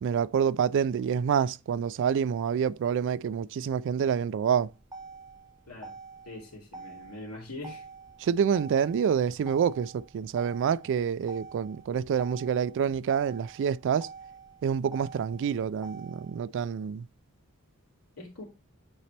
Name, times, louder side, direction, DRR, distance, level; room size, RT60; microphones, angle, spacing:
voice 1, 0.0-4.7 8.2-14.1 14.6-17.1, right 7 dB, 55° right, 0.3 m, -27 dB
Motor vehicle (road), 4.5-16.5, right 4 dB, 20° right, 1.2 m, -47 dB
voice 2, 6.2-7.9 18.2-18.4, left 2 dB, 80° left, 2.6 m, -42 dB
8.5 x 4.2 x 3.3 m
head